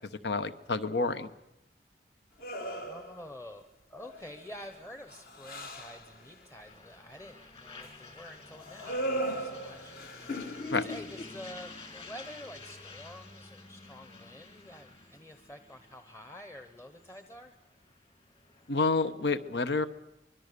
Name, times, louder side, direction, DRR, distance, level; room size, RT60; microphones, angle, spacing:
voice 1, 0.2-1.3 10.7-10.8 18.7-19.9, left 3 dB, 75° left, 12 dB, 1.1 m, -29 dB
sound 1, 2.4-3.3 3.9-4.4 4.8-6.1 8.6-11.2, equal, 55° left, 1.7 m, -37 dB
voice 2, 2.8-17.6, left 1 dB, 15° left, 7 dB, 0.9 m, -48 dB
sound 2, 4.0-18.9, left 3 dB, 35° left, 2.7 m, -51 dB
25.0 x 21.5 x 6.8 m, 0.87 s
head